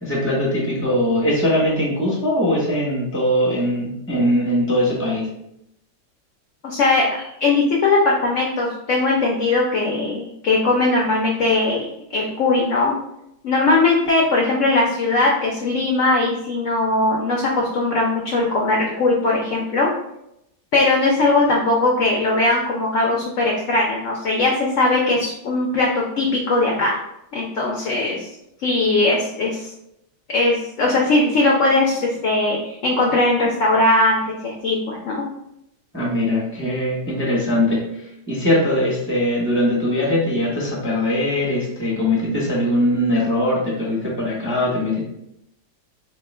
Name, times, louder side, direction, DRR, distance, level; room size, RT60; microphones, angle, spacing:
voice 1, 0.0-5.3 35.9-45.0, left 1 dB, 10° left, -5 dB, 1.0 m, -21 dB
voice 2, 6.6-11.8 12.1-12.9 13.4-19.9 20.7-27.0 27.3-28.3 28.6-29.7 30.3-35.2, left 2 dB, 65° left, -2 dB, 0.8 m, -19 dB
4.2 x 2.2 x 3.2 m, 0.82 s
omnidirectional pair, 1.8 m